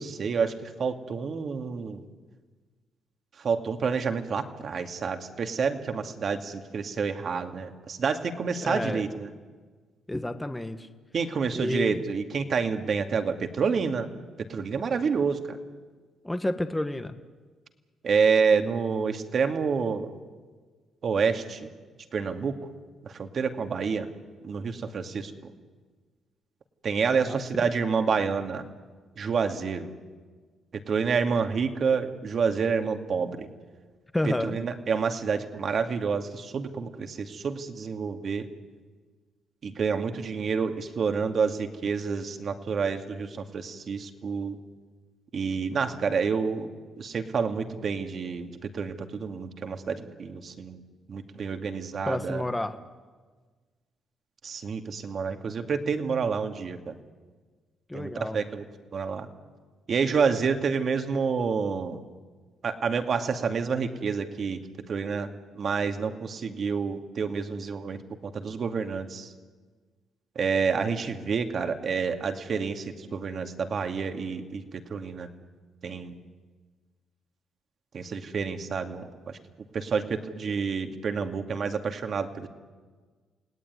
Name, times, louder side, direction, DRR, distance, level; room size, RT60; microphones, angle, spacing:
voice 1, 0.0-2.0 3.4-9.3 11.1-14.1 14.4-15.6 18.0-20.1 21.0-21.7 22.1-22.7 23.0-24.1 24.4-25.5 26.8-28.7 29.2-29.9 30.9-33.5 34.2-38.5 39.6-44.6 45.3-46.7 47.0-50.8 51.1-52.4 54.4-57.0 57.9-58.6 58.9-59.3 59.9-62.0 62.6-64.6 64.9-69.3 70.4-75.3 75.8-76.2 77.9-79.4 79.7-82.5, right 5 dB, 50° right, 6 dB, 2.3 m, -28 dB
voice 2, 8.6-9.0 10.1-10.9 11.6-12.0 16.2-17.2 27.1-27.4 34.1-34.6 52.0-52.8 57.9-58.4, left 1 dB, 10° left, 9 dB, 1.3 m, -30 dB
29.0 x 18.0 x 9.7 m, 1.5 s
cardioid pair, 90°, 0 cm